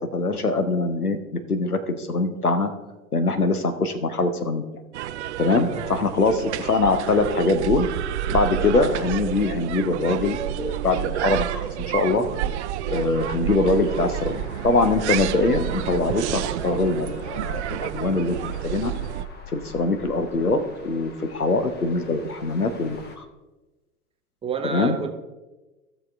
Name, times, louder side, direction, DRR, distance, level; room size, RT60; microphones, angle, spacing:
voice 1, 0.1-2.7 3.1-4.6 5.4-7.9 8.3-11.6 11.9-12.3 12.9-18.9 19.5-23.2 24.6-25.0, left 3 dB, 85° left, 9 dB, 0.9 m, -23 dB
sound 1, 4.9-19.2, right 11 dB, 50° right, 0.5 m, -29 dB
voice 2, 5.6-6.0 24.4-25.1, right 5 dB, 15° right, 5 dB, 0.7 m, -30 dB
sound 2, 13.6-23.2, left 3 dB, 25° left, 1.3 m, -45 dB
15.5 x 6.6 x 3.4 m, 1.1 s
figure-of-eight pair, 90°, 43 cm